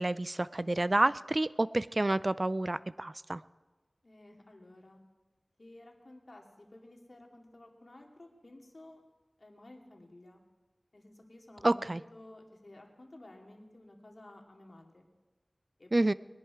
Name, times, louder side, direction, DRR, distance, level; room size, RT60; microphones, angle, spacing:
voice 1, 0.0-3.4 11.6-12.0 15.9-16.1, right 2 dB, 40° right, 17 dB, 0.4 m, -29 dB
voice 2, 4.0-5.0 5.6-9.0 9.4-10.4 10.9-15.1 15.8-15.9, left 1 dB, 55° left, 1 dB, 2.2 m, -54 dB
20.0 x 11.0 x 4.7 m, 1.2 s
wide cardioid pair, 55°, 0 cm